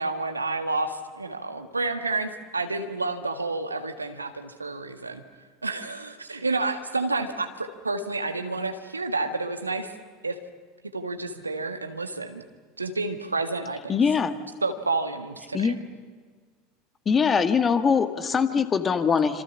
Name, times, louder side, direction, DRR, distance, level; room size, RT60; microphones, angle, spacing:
voice 1, 0.0-5.2 5.6-9.9 10.2-10.4 10.9-12.4 12.8-14.0 14.6-15.8, right 3 dB, 85° right, 7 dB, 1.7 m, -30 dB
voice 2, 13.9-14.4 15.5-15.8 17.1-19.4, left 6 dB, 25° left, 9 dB, 1.9 m, -22 dB
27.0 x 26.5 x 7.3 m, 1.5 s
figure-of-eight pair, 75°, 0 cm